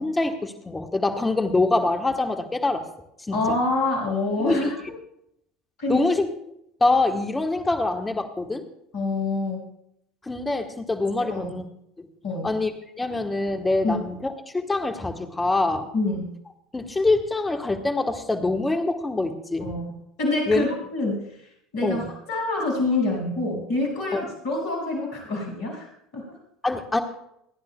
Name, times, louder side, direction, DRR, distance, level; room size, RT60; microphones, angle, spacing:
voice 1, 0.0-2.8 3.3-3.6 4.4-4.7 5.9-6.3 6.8-8.6 10.2-11.7 12.0-12.1 12.4-15.9 16.7-19.7 20.5-20.6 21.8-22.1 24.1-24.2 26.6-27.0, left 2 dB, 15° left, 6 dB, 1.4 m, -24 dB
voice 2, 3.3-4.8 5.8-6.0 8.9-9.6 11.3-11.5 12.2-12.5 13.8-14.0 15.9-16.2 19.6-19.8 20.2-21.3 21.7-26.2, left 2 dB, 60° left, 1 dB, 5.7 m, -26 dB
27.5 x 10.5 x 2.3 m, 0.76 s
figure-of-eight pair, 65°, 0 cm